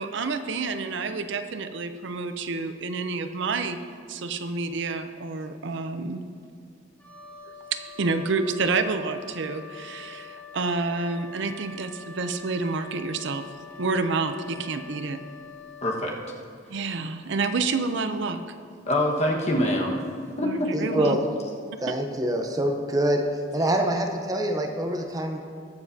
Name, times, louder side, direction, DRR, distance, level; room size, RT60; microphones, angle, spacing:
voice 1, 0.0-3.8 4.1-6.2 7.7-13.4 13.8-15.2 16.7-18.4 20.4-21.2, right 4 dB, 65° right, 9 dB, 0.6 m, -29 dB
Wind instrument woodwind instrument, 7.0-16.1, left 4 dB, 10° left, 1.4 m, -44 dB
voice 2, 15.8-16.1 18.9-20.0 20.4-21.0, left 1 dB, 35° left, -1 dB, 1.5 m, -25 dB
voice 3, 20.7-21.2 21.8-23.2 23.5-25.5, right 1 dB, 20° right, 3 dB, 0.8 m, -25 dB
21.0 x 7.1 x 2.8 m, 2.4 s
head